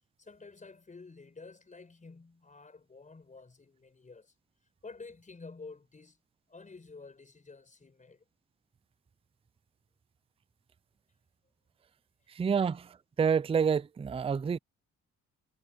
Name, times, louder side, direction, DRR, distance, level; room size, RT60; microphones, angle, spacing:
voice 1, 0.2-4.3 4.8-6.2 6.5-8.3 12.2-12.4, left 4 dB, 25° left, 5.1 m, -50 dB
voice 2, 12.3-14.6, right 6 dB, 20° right, 0.4 m, -28 dB
cardioid pair, 90°, 30 cm